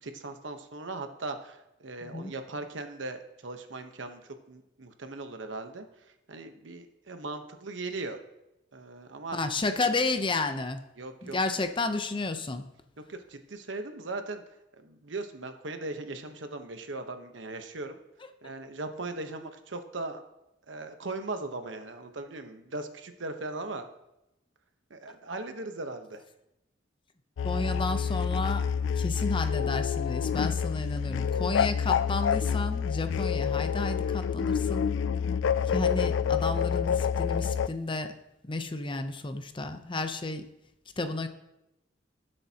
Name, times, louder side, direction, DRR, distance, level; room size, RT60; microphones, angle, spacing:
voice 1, 0.0-5.9 6.3-8.2 8.7-9.4 11.0-11.4 13.1-14.4 14.8-18.0 18.4-20.2 20.7-23.9 24.9-26.2, right 2 dB, 80° right, 7 dB, 1.1 m, -38 dB
voice 2, 2.0-2.3 9.3-10.8 11.2-12.7 27.4-28.6 29.0-34.9 35.7-38.1 38.5-40.4 41.0-41.3, left 2 dB, 25° left, 8 dB, 0.7 m, -32 dB
sound 1, 27.4-37.7, left 7 dB, 85° left, 0.3 m, -28 dB
18.5 x 7.7 x 2.9 m, 0.89 s
head